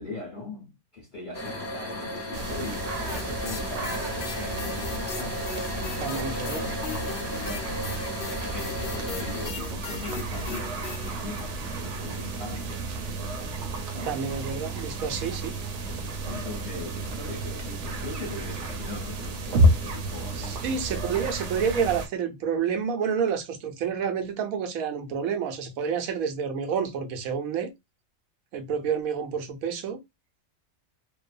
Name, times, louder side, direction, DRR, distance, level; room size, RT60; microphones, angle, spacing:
voice 1, 0.0-5.4 5.7-6.2 6.5-13.5 13.9-14.2 16.2-20.8, left 3 dB, 40° left, 1.1 m, -41 dB
sound 1, 1.3-9.5, left 1 dB, 20° left, 0.5 m, -35 dB
sound 2, 2.3-22.1, right 1 dB, 65° right, 0.9 m, -31 dB
sound 3, 3.1-11.1, left 6 dB, 70° left, 0.5 m, -39 dB
voice 2, 6.0-6.7 14.0-15.6 20.4-27.7 28.5-30.0, right 7 dB, 90° right, 1.1 m, -29 dB
3.0 x 2.0 x 2.4 m
omnidirectional pair, 1.4 m